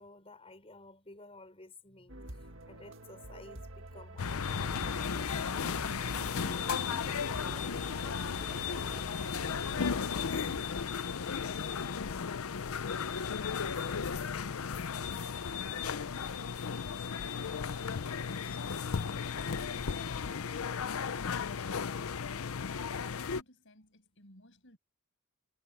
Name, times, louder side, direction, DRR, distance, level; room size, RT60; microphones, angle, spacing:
voice 1, 0.0-10.6 18.3-18.6, left 2 dB, 25° left, 5.9 m, -54 dB
sound 1, 2.1-10.7, right 1 dB, 60° right, 2.0 m, -47 dB
sound 2, 4.2-23.4, left 6 dB, 75° left, 0.6 m, -35 dB
voice 2, 20.3-24.8, left 1 dB, 60° left, 8.0 m, -60 dB
head